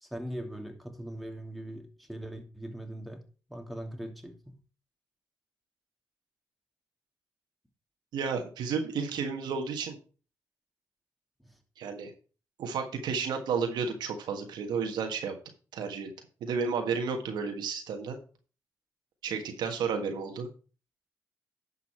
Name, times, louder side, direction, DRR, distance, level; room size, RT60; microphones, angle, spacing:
voice 1, 0.0-3.2 3.5-4.5, right 1 dB, ahead, 2.6 m, -40 dB
voice 2, 8.1-10.0 11.8-12.1 12.6-15.4 15.7-16.1 16.4-18.2 19.2-20.5, right 5 dB, 85° right, 1.5 m, -32 dB
10.5 x 5.7 x 4.4 m
supercardioid pair, 50°, 7 cm